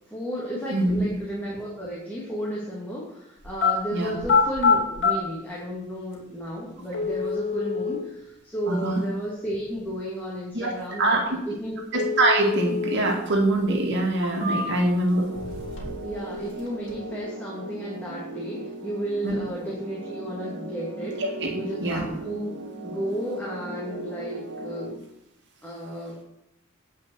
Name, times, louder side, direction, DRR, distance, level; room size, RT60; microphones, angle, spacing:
voice 1, 0.1-11.8 16.0-21.2 21.5-22.6 22.8-24.9 25.6-26.2, equal, 10° left, -6 dB, 2.3 m, -33 dB
voice 2, 0.7-1.1 3.9-4.1 8.7-9.0 10.5-10.7 11.0-11.4 11.9-15.3 19.2-19.3 21.2-21.5 21.8-22.0, right 1 dB, 60° right, 0 dB, 2.2 m, -23 dB
sound 1, 3.4-3.7 4.2-5.1 6.1-6.2 6.9-8.0 11.9-13.0 13.4-13.5 14.1-14.9 15.3-16.1 16.4-16.9, left 5 dB, 60° left, 3.2 m, -25 dB
sound 2, 15.1-25.0, right 1 dB, 80° right, 2.0 m, -37 dB
9.2 x 5.6 x 7.9 m, 0.79 s
head